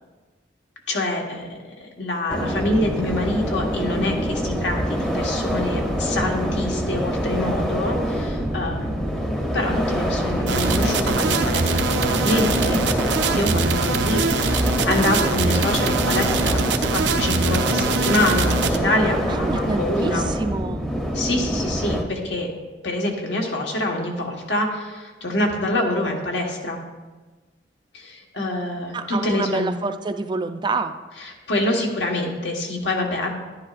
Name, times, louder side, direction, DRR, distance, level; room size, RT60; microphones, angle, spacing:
voice 1, 0.9-9.0 9.5-12.8 13.3-16.6 16.9-20.3 21.1-22.5 22.8-26.8 27.9-29.7 31.2-33.3, left 1 dB, 80° left, 1 dB, 1.4 m, -26 dB
sound 1, 2.3-22.0, equal, 5° left, 0.7 m, -25 dB
sound 2, 10.5-18.8, right 4 dB, 90° right, 0.6 m, -23 dB
voice 2, 19.3-20.9 28.9-30.9, right 3 dB, 25° right, 8 dB, 0.4 m, -27 dB
11.0 x 10.5 x 2.5 m, 1.3 s
head